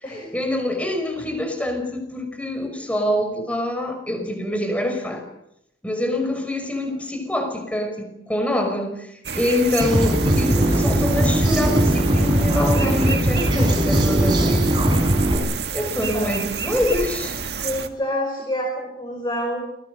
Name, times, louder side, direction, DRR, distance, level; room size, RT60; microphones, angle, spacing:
voice 1, 0.0-5.2 5.8-9.1 9.3-14.8 15.7-17.7, left 1 dB, 10° left, 5 dB, 5.6 m, -25 dB
sound 1, 9.2-17.9, right 6 dB, 65° right, 1.9 m, -30 dB
sound 2, 9.8-15.4, right 1 dB, 25° right, 5.8 m, -19 dB
voice 2, 17.6-19.7, equal, 25° left, 1 dB, 5.6 m, -27 dB
28.5 x 21.0 x 6.6 m, 0.79 s
head